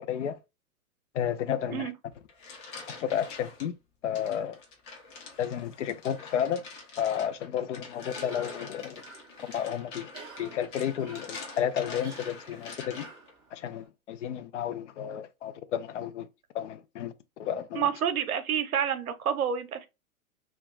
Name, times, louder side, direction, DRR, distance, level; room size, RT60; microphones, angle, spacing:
voice 1, 1.1-1.9 2.9-3.7 4.0-4.6 5.4-6.6 7.0-9.0 9.5-10.1 10.4-13.1 13.5-16.3 16.5-17.9, left 9 dB, 55° left, 0.5 m, -32 dB
sound 1, 2.1-3.7 4.1-13.3, left 4 dB, 35° left, 0.9 m, -45 dB
Cough, 8.1-13.9, right 4 dB, 10° right, 0.5 m, -50 dB
voice 2, 17.7-19.9, right 8 dB, 75° right, 0.7 m, -28 dB
2.3 x 2.3 x 3.6 m
figure-of-eight pair, 110°, 43 cm